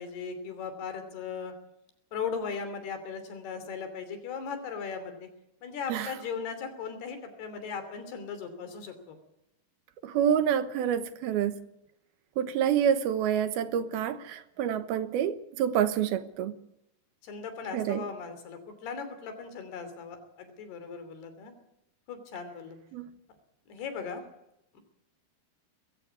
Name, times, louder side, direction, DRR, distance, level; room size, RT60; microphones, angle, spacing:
voice 1, 0.0-1.5 2.1-5.3 5.6-9.2 17.2-21.5 22.1-22.8 23.7-24.2 24.7-24.8, left 6 dB, 85° left, 9 dB, 5.1 m, -38 dB
voice 2, 10.0-11.6 12.4-16.5 17.7-18.1 22.9-23.1, right 9 dB, 75° right, 12 dB, 3.0 m, -27 dB
21.0 x 15.5 x 8.3 m, 0.83 s
omnidirectional pair, 4.5 m